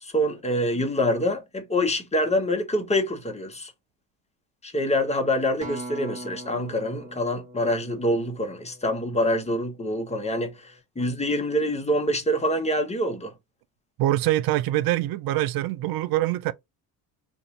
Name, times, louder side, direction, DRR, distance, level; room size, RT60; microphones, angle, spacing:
voice 1, 0.0-3.7 4.6-13.3, equal, 15° left, 1.1 m, -26 dB
Acoustic guitar, 5.6-10.0 10.7-10.8, right 2 dB, 15° right, 1.5 m, -42 dB
voice 2, 14.0-16.5, right 15 dB, 50° right, 0.5 m, -24 dB
2.8 x 2.6 x 3.9 m
supercardioid pair, 80°, 46 cm